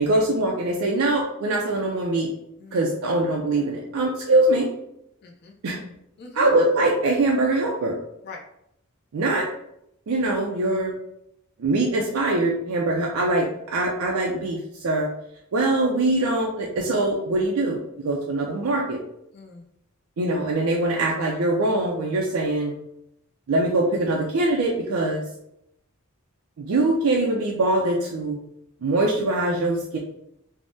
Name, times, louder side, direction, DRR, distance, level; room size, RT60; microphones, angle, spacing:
voice 1, 0.0-2.3 2.7-4.7 5.6-5.8 6.3-8.0 9.1-9.5 10.1-10.9 11.6-15.1 15.5-17.8 18.0-19.0 20.2-22.8 23.5-25.2 26.6-28.4 28.8-30.0, right 2 dB, 75° right, -1 dB, 0.4 m, -23 dB
voice 2, 5.2-5.5 6.2-6.5 8.2-8.4 19.3-19.6, left 4 dB, 50° left, 1 dB, 0.4 m, -40 dB
3.4 x 2.0 x 2.6 m, 0.79 s
head